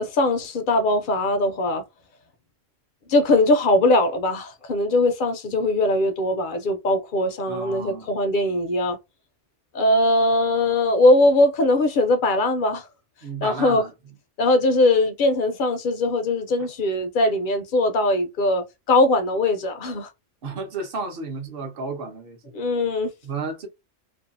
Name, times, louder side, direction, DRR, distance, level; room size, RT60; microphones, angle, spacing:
voice 1, 0.0-1.8 3.1-9.0 9.7-12.9 13.4-13.8 14.4-20.1 22.5-23.1, left 2 dB, 60° left, 0.5 m, -20 dB
voice 2, 7.5-8.1 13.2-13.9 20.4-22.4 23.2-23.7, right 4 dB, 55° right, 0.8 m, -32 dB
2.6 x 2.2 x 2.5 m
omnidirectional pair, 1.3 m